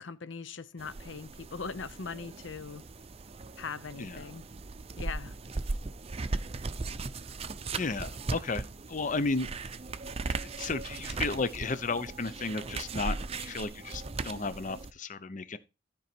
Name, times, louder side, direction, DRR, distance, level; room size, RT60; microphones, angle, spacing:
voice 1, 0.0-2.8 3.6-4.5 5.0-5.3, left 5 dB, 75° left, 0.7 m, -40 dB
sound 1, 0.8-14.9, right 3 dB, 30° right, 0.5 m, -38 dB
voice 2, 7.8-9.5 10.4-15.6, left 3 dB, 40° left, 0.7 m, -33 dB
13.5 x 5.3 x 4.5 m
head